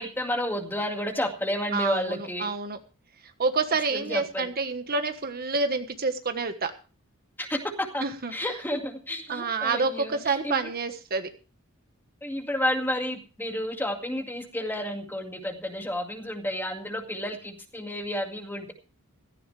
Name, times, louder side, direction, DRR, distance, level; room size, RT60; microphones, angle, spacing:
voice 1, 0.0-2.5 3.9-4.5 7.4-8.0 8.3-10.6 12.2-18.7, left 1 dB, 10° left, 4 dB, 2.1 m, -31 dB
voice 2, 1.7-2.8 3.4-6.7 8.0-8.3 9.3-11.3, right 4 dB, 45° right, 8 dB, 1.3 m, -28 dB
16.5 x 14.5 x 3.3 m, 0.35 s
head